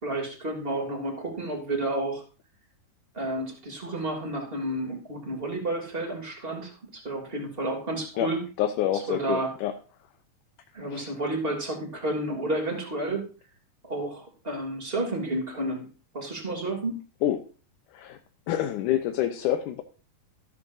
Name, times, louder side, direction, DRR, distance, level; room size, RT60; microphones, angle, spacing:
voice 1, 0.0-2.2 3.1-8.4 9.1-9.5 10.7-13.3 13.8-15.9 16.1-17.0, right 2 dB, 15° right, 2 dB, 2.8 m, -31 dB
voice 2, 8.6-9.7 10.8-11.1 17.2-17.4 17.9-18.2 18.5-19.8, left 11 dB, 75° left, 6 dB, 2.3 m, -27 dB
14.0 x 13.0 x 2.7 m, 0.36 s
omnidirectional pair, 3.8 m